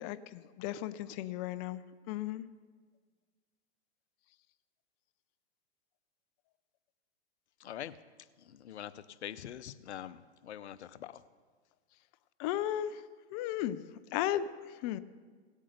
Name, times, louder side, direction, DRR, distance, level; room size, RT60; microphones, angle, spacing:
voice 1, 0.0-1.8 2.1-2.4 12.4-13.0 13.3-13.8 14.1-14.5 14.8-15.0, left 12 dB, 35° left, 13 dB, 0.5 m, -35 dB
voice 2, 7.6-8.0 8.4-11.2, left 11 dB, 80° left, 15 dB, 0.7 m, -44 dB
17.5 x 8.4 x 6.6 m, 1.5 s
hypercardioid pair, 130°, 33 cm